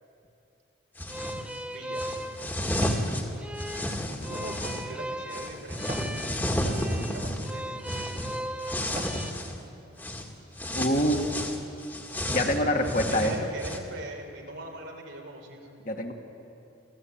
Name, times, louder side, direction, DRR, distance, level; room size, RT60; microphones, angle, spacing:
sound 1, 1.0-1.5 1.9-4.9 5.3-9.6 10.0-10.3 10.6-13.8, left 1 dB, 10° left, 1.9 m, -32 dB
sound 2, 1.1-9.3, right 1 dB, 5° right, 0.7 m, -38 dB
sound 3, 1.5-3.1 3.6-6.2 6.8-7.1 7.8-7.9 8.4-9.3 9.8-9.9, right 1 dB, 40° right, 1.7 m, -44 dB
voice 1, 1.7-2.1 4.2-8.1 12.4-15.7, right 1 dB, 85° right, 1 dB, 4.6 m, -41 dB
voice 2, 10.7-11.3 12.3-13.3 15.9-16.1, equal, 45° left, 2 dB, 2.1 m, -25 dB
28.5 x 15.5 x 8.9 m, 2.7 s
head